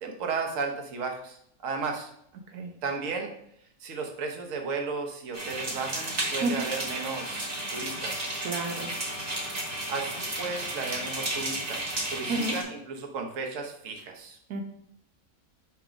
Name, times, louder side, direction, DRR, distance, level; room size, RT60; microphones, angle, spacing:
voice 1, 0.0-1.4 1.6-2.1 2.8-3.3 3.8-8.3 9.9-11.8 12.1-14.4, right 4 dB, 60° right, 3 dB, 1.3 m, -34 dB
sound 1, 5.3-12.6, right 2 dB, 40° right, 1.4 m, -33 dB
Trumpet, 6.8-11.4, left 7 dB, 60° left, 0.9 m, -47 dB
voice 2, 8.4-8.9 12.3-12.6 14.5-14.6, right 2 dB, 90° right, 3 dB, 1.3 m, -30 dB
5.9 x 3.7 x 5.0 m, 0.70 s
omnidirectional pair, 1.6 m